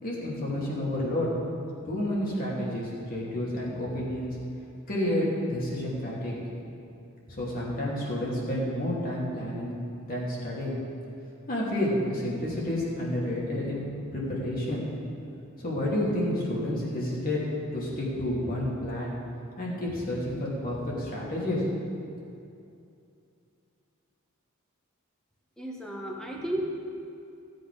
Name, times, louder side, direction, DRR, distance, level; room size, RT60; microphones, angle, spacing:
voice 1, 0.0-1.3 1.8-4.4 4.9-6.6 7.3-9.8 10.1-10.8 11.5-13.8 14.1-14.8 15.6-17.4 17.7-19.1 19.6-21.6, left 1 dB, 40° left, -5 dB, 2.8 m, -30 dB
voice 2, 25.6-26.6, right 1 dB, 5° left, -2 dB, 1.6 m, -33 dB
16.0 x 8.0 x 5.0 m, 2.6 s
head